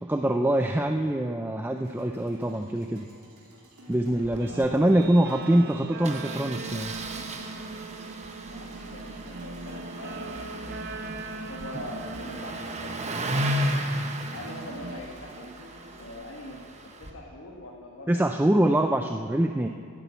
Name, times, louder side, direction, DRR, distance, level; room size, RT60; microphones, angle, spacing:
voice 1, 0.0-3.1 3.9-6.9 18.1-19.7, right 1 dB, 10° right, 5 dB, 0.4 m, -24 dB
sound 1, 1.7-16.1, right 1 dB, 80° right, 3.0 m, -50 dB
Engine starting, 4.2-4.4 4.6-4.7 5.0-5.1 6.0-17.1, right 1 dB, 30° right, 1.0 m, -35 dB
Guitar, 4.4-15.0, right 3 dB, 45° right, 0.6 m, -40 dB
voice 2, 4.5-5.8 8.5-10.8 11.5-13.0 13.5-13.7 14.3-15.5 16.0-18.5, left 1 dB, 60° left, -2 dB, 1.6 m, -42 dB
11.0 x 10.0 x 8.2 m, 2.5 s
head